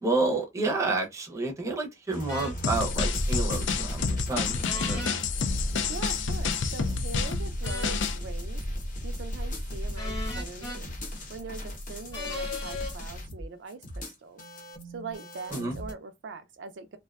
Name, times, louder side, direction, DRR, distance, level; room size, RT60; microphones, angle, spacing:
voice 1, 0.0-5.1 15.5-15.7, right 3 dB, 15° right, 0.6 m, -30 dB
sound 1, 2.1-15.9, equal, 45° left, 0.7 m, -35 dB
sound 2, 2.3-2.5 4.7-5.2 7.6-8.0 10.0-10.8 12.1-12.9, left 2 dB, 20° left, 0.9 m, -36 dB
sound 3, 2.6-8.2, left 6 dB, 90° left, 0.4 m, -30 dB
voice 2, 5.9-11.0 11.3-14.4 14.9-17.0, right 4 dB, 75° right, 0.4 m, -42 dB
2.6 x 2.2 x 2.3 m
head